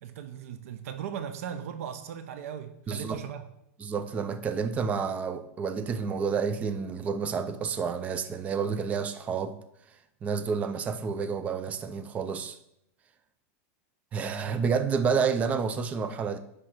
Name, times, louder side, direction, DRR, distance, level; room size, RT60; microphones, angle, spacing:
voice 1, 0.0-3.5, right 8 dB, 65° right, 0.7 m, -38 dB
voice 2, 2.9-3.2 3.8-9.6 10.2-12.6 14.1-16.4, right 6 dB, 15° right, 0.4 m, -29 dB
9.9 x 3.3 x 5.8 m
supercardioid pair, 155°, 8 cm